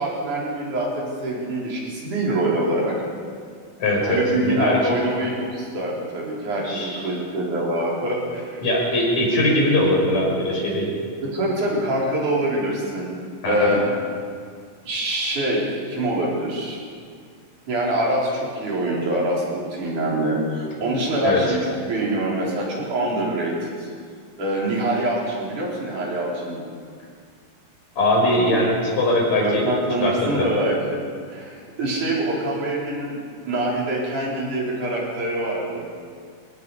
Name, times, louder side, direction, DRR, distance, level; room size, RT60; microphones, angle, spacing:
voice 1, 0.0-3.0 4.0-8.6 11.2-13.2 13.5-14.0 14.9-16.8 17.7-21.6 21.9-23.9 24.4-26.6 29.4-31.0 31.3-35.8, right 1 dB, 50° right, -4 dB, 5.9 m, -24 dB
voice 2, 3.8-4.9 6.6-7.0 8.6-10.9 13.4-13.7 21.2-21.4 28.0-29.6 30.0-30.5, left 1 dB, 45° left, -2 dB, 6.7 m, -21 dB
28.5 x 18.0 x 5.1 m, 2.1 s
omnidirectional pair, 4.5 m